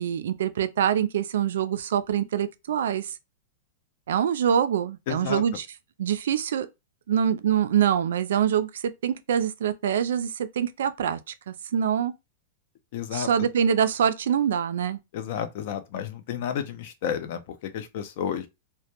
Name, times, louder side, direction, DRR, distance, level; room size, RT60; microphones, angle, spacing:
voice 1, 0.0-3.1 4.1-5.7 6.0-6.7 7.1-8.7 9.0-11.2 11.5-12.1 13.1-15.0, right 8 dB, 75° right, 0.3 m, -24 dB
voice 2, 5.1-5.4 12.9-13.5 15.1-18.5, left 8 dB, 45° left, 0.4 m, -31 dB
2.2 x 2.1 x 2.8 m
supercardioid pair, 175°, 0 cm